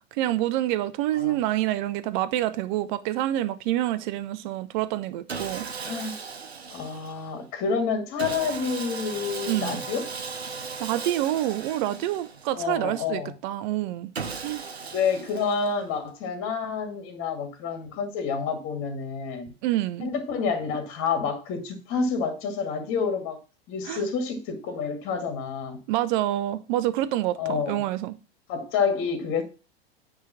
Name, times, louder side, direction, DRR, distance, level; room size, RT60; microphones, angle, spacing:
voice 1, 0.0-5.7 9.5-9.8 10.8-14.1 14.4-14.6 19.6-20.1 23.8-24.0 25.9-28.1, right 14 dB, 50° right, 0.9 m, -27 dB
Sawing, 5.3-7.3 8.2-12.7 14.1-16.0, right 5 dB, 85° right, 1.0 m, -37 dB
voice 2, 5.8-6.2 6.7-10.1 12.5-13.3 14.9-19.5 20.0-23.4 23.7-25.8 27.4-27.8 28.5-29.4, left 5 dB, 40° left, 2.2 m, -28 dB
9.6 x 3.7 x 7.2 m
figure-of-eight pair, 90°, 31 cm